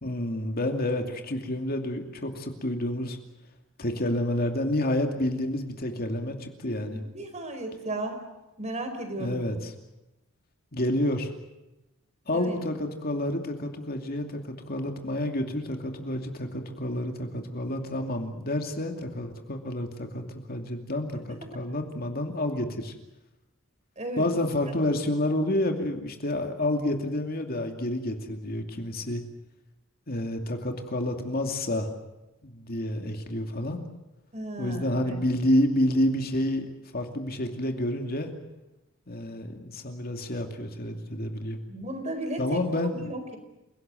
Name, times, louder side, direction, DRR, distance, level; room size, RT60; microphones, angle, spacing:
voice 1, 0.0-3.2 3.8-7.0 9.1-9.6 10.7-11.3 12.3-22.9 24.2-29.2 30.1-31.9 32.4-33.8 34.6-36.7 36.9-38.3 39.1-41.6 42.4-43.0, left 1 dB, 45° left, 4 dB, 2.6 m, -29 dB
voice 2, 6.7-8.2 8.6-9.4 12.3-12.6 24.0-24.3 34.3-35.2 41.7-42.6 42.9-43.4, right 1 dB, 35° right, 6 dB, 4.8 m, -35 dB
29.0 x 18.0 x 7.8 m, 0.96 s
head